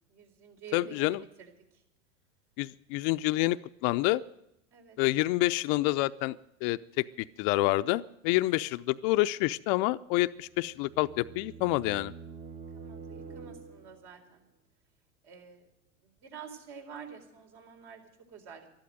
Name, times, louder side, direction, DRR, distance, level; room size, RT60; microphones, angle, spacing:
voice 1, 0.1-1.5 4.7-5.0 12.7-14.5 15.2-15.7 16.2-18.0 18.3-18.7, right 7 dB, 60° right, 4 dB, 4.2 m, -48 dB
voice 2, 0.7-1.2 2.6-4.2 5.0-6.4 6.6-12.1, left 19 dB, 45° left, 13 dB, 0.5 m, -28 dB
sound 1, 10.3-14.2, right 5 dB, 20° right, 0.8 m, -47 dB
13.0 x 11.5 x 9.3 m, 0.81 s
hypercardioid pair, 105°, 39 cm